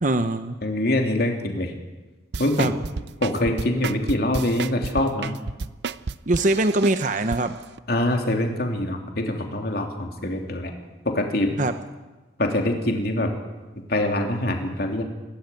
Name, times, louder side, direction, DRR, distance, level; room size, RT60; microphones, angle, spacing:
voice 1, 0.0-0.5 2.6-2.7 6.3-7.5 11.6-11.7, right 2 dB, 45° right, 9 dB, 1.0 m, -22 dB
voice 2, 0.6-1.7 2.4-2.8 3.2-5.4 7.9-10.7 11.0-11.6 12.4-13.3 13.9-15.0, left 1 dB, 60° left, 3 dB, 3.1 m, -24 dB
sound 1, 2.3-7.4 7.8-7.9, right 4 dB, 70° right, 0.6 m, -30 dB
27.0 x 14.0 x 9.2 m, 1.2 s
head